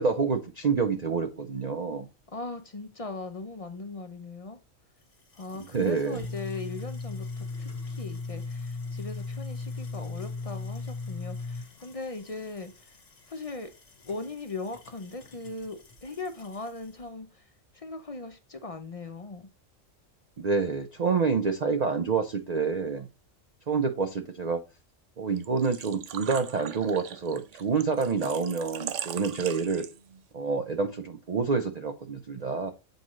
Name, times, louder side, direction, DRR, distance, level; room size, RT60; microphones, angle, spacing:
voice 1, 0.0-2.1 5.7-6.2 20.4-23.1 23.7-24.6 25.2-29.8 30.3-32.7, right 5 dB, 50° right, 0.5 m, -28 dB
voice 2, 2.3-4.6 5.3-13.0 13.3-13.7 14.1-19.5, left 3 dB, 45° left, 0.4 m, -39 dB
sound 1, 5.0-17.0, left 3 dB, 65° left, 1.8 m, -39 dB
Engine / Trickle dribble / Fill (with liquid), 25.4-30.2, right 10 dB, 70° right, 0.9 m, -40 dB
7.9 x 4.8 x 3.1 m
omnidirectional pair, 1.4 m